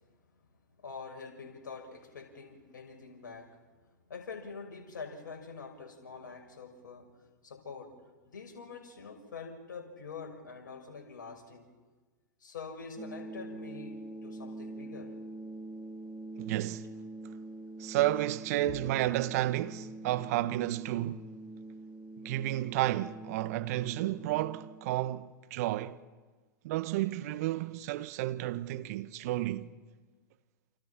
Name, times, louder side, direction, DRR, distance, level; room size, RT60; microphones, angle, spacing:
voice 1, 0.8-11.7 12.4-15.2 18.7-18.8, left 5 dB, 70° left, 6.1 m, -46 dB
sound 1, 13.0-24.9, right 2 dB, 10° right, 4.7 m, -45 dB
voice 2, 16.4-16.9 17.8-21.3 22.2-26.0 26.6-29.7, right 15 dB, 50° right, 1.2 m, -32 dB
29.0 x 28.5 x 5.9 m
figure-of-eight pair, 100°, 11 cm